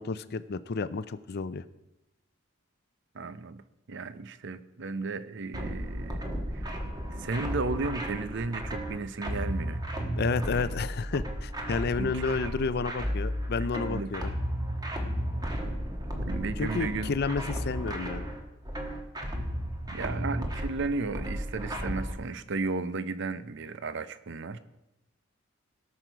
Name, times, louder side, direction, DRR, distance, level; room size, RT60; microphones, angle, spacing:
voice 1, 0.0-1.6 10.2-14.4 16.6-18.3, left 4 dB, 55° left, 14 dB, 0.5 m, -31 dB
voice 2, 3.1-3.6 3.9-6.2 6.5-6.7 7.1-9.8 12.0-12.5 13.6-14.1 16.0-17.1 19.9-24.6, right 3 dB, 65° right, 13 dB, 0.7 m, -34 dB
sound 1, 5.5-22.1, equal, 20° right, 1.4 m, -34 dB
17.5 x 6.4 x 4.5 m, 0.93 s
head